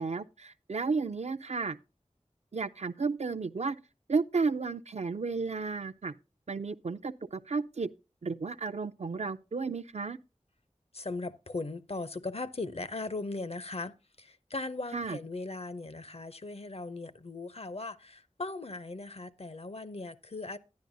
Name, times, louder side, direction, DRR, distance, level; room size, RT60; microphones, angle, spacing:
voice 1, 0.0-1.8 2.5-3.8 4.1-6.1 6.5-7.9 8.2-10.2 14.9-15.2, right 4 dB, 60° right, 0.4 m, -33 dB
voice 2, 10.9-20.6, left 3 dB, 55° left, 0.5 m, -38 dB
10.5 x 9.9 x 2.6 m
wide cardioid pair, 40°, 13 cm